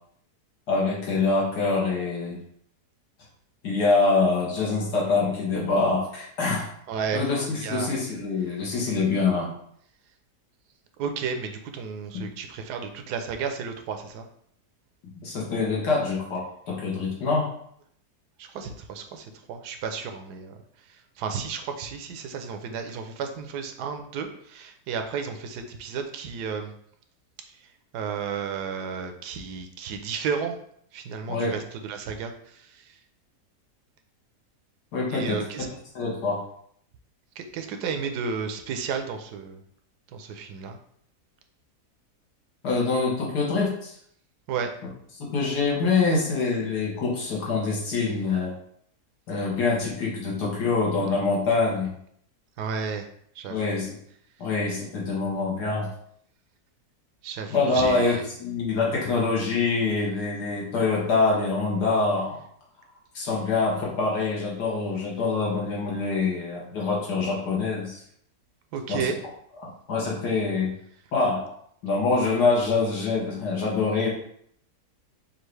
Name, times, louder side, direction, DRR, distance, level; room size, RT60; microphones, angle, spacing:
voice 1, 0.7-2.4 3.6-6.7 7.1-9.5 12.1-12.2 15.1-17.5 31.3-31.6 34.9-35.5 36.0-36.4 42.6-43.9 45.2-48.5 49.3-51.9 53.5-54.0 54.4-55.9 57.5-62.4 63.2-68.0 68.9-69.1 69.6-70.7 71.1-71.6 71.8-74.1, left 3 dB, 80° left, -4 dB, 1.7 m, -25 dB
voice 2, 6.9-7.2 7.6-7.9 11.0-14.3 18.4-20.5 20.9-26.7 27.9-30.6 30.9-32.9 35.1-35.7 37.4-39.6 40.1-40.8 44.5-44.7 52.6-53.1 53.4-53.7 57.2-58.2 68.7-69.2, right 6 dB, 80° right, 6 dB, 1.1 m, -32 dB
5.4 x 2.4 x 3.2 m, 0.66 s
omnidirectional pair, 1.7 m